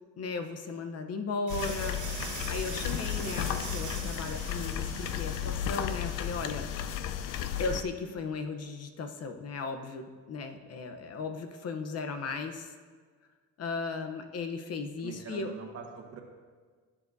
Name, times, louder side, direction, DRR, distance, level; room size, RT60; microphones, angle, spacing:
voice 1, 0.2-2.0 2.5-6.7 7.6-12.7 13.6-15.5, left 4 dB, 50° left, 7 dB, 0.8 m, -36 dB
sound 1, 1.5-7.8, left 9 dB, 80° left, 0.6 m, -34 dB
sound 2, 1.5-7.2, right 5 dB, 70° right, 2.0 m, -43 dB
voice 2, 15.0-16.2, right 7 dB, 50° right, 2 dB, 1.5 m, -43 dB
16.0 x 7.3 x 2.7 m, 1.5 s
cardioid pair, 115°, 32 cm